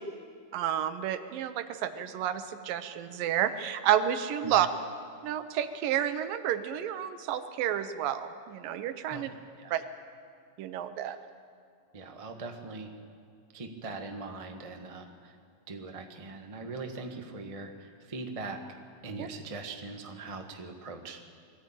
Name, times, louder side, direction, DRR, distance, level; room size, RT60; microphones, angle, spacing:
voice 1, 0.5-4.7 5.2-9.3 9.7-9.8 10.6-11.2 19.2-19.3, right 10 dB, 85° right, 10 dB, 2.7 m, -30 dB
voice 2, 11.9-12.9 13.5-15.3 15.7-18.6 19.0-21.2, right 3 dB, 35° right, 3 dB, 0.5 m, -41 dB
21.5 x 15.0 x 9.0 m, 2.4 s
omnidirectional pair, 3.9 m